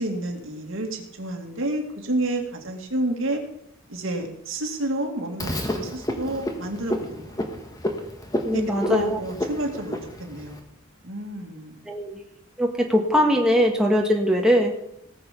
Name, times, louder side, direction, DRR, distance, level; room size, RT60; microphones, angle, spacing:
voice 1, 0.0-3.4 3.9-7.4 8.5-8.6 8.9-10.6 11.0-11.8, right 1 dB, 75° right, 2 dB, 2.3 m, -29 dB
Frog, 5.4-10.6, equal, 20° left, 1.5 m, -30 dB
voice 2, 8.4-9.2 11.9-12.2 12.6-14.7, equal, 5° right, -1 dB, 1.6 m, -21 dB
18.5 x 7.0 x 5.3 m, 0.79 s
head